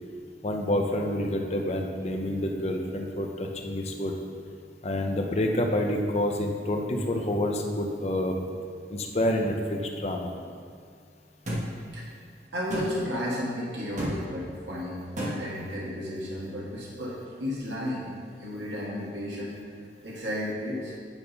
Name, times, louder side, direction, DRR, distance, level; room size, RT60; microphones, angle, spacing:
voice 1, 0.4-4.1 4.8-8.3 8.9-10.3, left 1 dB, 35° left, 2 dB, 0.7 m, -28 dB
sound 1, 11.5-11.6 12.7-12.9 14.0-14.1 15.2-15.3, right 1 dB, 45° right, 1.7 m, -29 dB
voice 2, 12.5-18.1 18.4-19.6 20.0-20.9, left 1 dB, 90° right, -6 dB, 1.5 m, -33 dB
8.8 x 4.2 x 5.3 m, 2.2 s
head